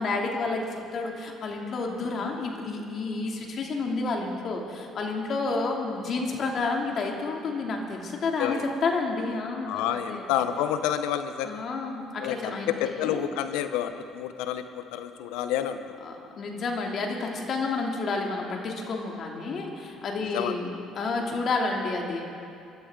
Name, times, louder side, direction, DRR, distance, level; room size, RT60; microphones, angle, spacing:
voice 1, 0.0-10.3 11.4-13.3 16.0-22.3, left 3 dB, 50° left, 0 dB, 2.7 m, -30 dB
voice 2, 9.7-11.6 12.2-15.9 20.3-20.5, left 10 dB, 80° left, 9 dB, 0.9 m, -29 dB
23.5 x 12.5 x 3.9 m, 2.6 s
supercardioid pair, 70°, 0 cm